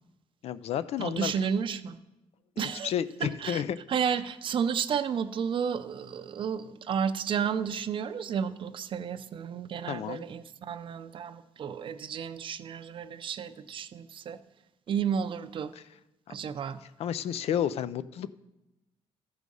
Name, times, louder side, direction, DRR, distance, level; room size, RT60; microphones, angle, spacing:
voice 1, 0.4-1.3 2.6-3.8 9.9-10.2 17.0-18.3, left 9 dB, 60° left, 15 dB, 0.4 m, -31 dB
voice 2, 1.0-2.0 2.6-2.9 3.2-3.6 3.9-14.4 14.9-15.7 16.3-16.8, right 7 dB, 45° right, 11 dB, 0.5 m, -32 dB
13.5 x 4.8 x 5.3 m, 0.96 s
cardioid pair, 125°, 12 cm